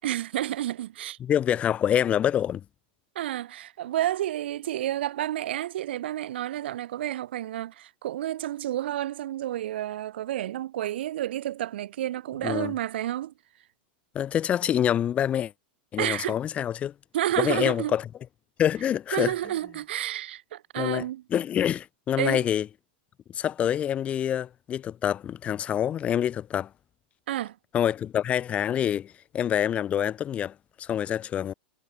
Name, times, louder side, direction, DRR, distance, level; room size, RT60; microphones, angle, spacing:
voice 1, 0.0-1.2 3.1-13.3 16.0-16.4 17.1-18.0 19.1-21.2 22.2-22.5 27.3-27.6, right 13 dB, 80° right, 3.0 m, -30 dB
voice 2, 1.2-2.6 12.4-12.7 14.1-15.5 15.9-16.9 17.4-18.0 18.6-19.3 20.8-21.0 21.3-22.7 23.3-26.7 27.7-31.5, left 10 dB, 20° left, 3.7 m, -26 dB
supercardioid pair, 160°, 6 cm